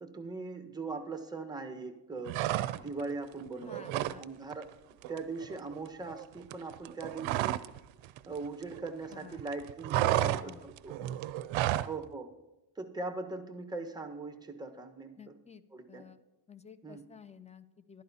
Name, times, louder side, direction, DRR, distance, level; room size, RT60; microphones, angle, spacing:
voice 1, 0.0-2.4 2.7-4.7 5.1-7.6 8.3-10.9 11.7-12.3 12.8-15.4 15.7-16.0 16.8-17.0, right 3 dB, 10° right, 5 dB, 1.2 m, -40 dB
sound 1, 2.3-3.1 3.4-4.2 4.5-4.7 5.0-7.8 8.0-9.1 9.4-12.0, right 15 dB, 80° right, 0.5 m, -32 dB
voice 2, 3.6-4.2 9.1-9.4 9.9-10.6 11.0-11.3 15.2-16.2 16.5-18.0, left 6 dB, 15° left, 13 dB, 0.5 m, -51 dB
14.5 x 11.5 x 2.8 m, 0.99 s
cardioid pair, 85°, 46 cm